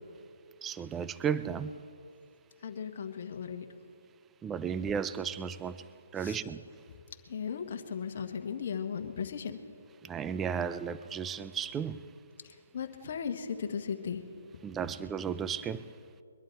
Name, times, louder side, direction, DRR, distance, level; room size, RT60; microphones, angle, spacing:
voice 1, 0.6-1.8 4.4-6.6 10.0-12.1 14.6-15.9, right 7 dB, 15° right, 14 dB, 0.4 m, -34 dB
voice 2, 2.6-3.7 6.2-6.4 7.3-9.6 12.4-14.2, left 7 dB, 55° left, 5 dB, 1.4 m, -37 dB
22.5 x 11.5 x 4.6 m, 2.6 s
hypercardioid pair, 145°, 0 cm